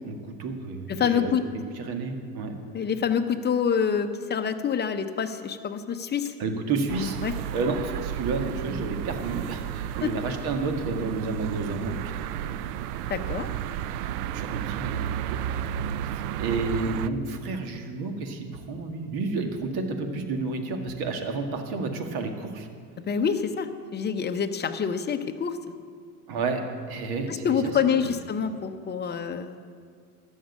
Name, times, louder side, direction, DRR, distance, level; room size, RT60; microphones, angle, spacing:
voice 1, 0.0-1.3 1.8-2.5 6.4-7.2 7.5-12.6 14.1-15.4 16.4-22.7 26.3-26.6 26.9-27.7 28.0-28.1, right 3 dB, 50° right, 5 dB, 1.9 m, -31 dB
voice 2, 0.9-1.5 2.7-6.3 7.2-7.3 10.0-10.1 13.1-13.5 23.1-25.6 27.3-29.6, left 7 dB, 20° left, 7 dB, 0.8 m, -26 dB
sound 1, 6.9-17.1, right 11 dB, 75° right, 0.6 m, -33 dB
13.0 x 6.5 x 8.6 m, 2.1 s
hypercardioid pair, 100°, 47 cm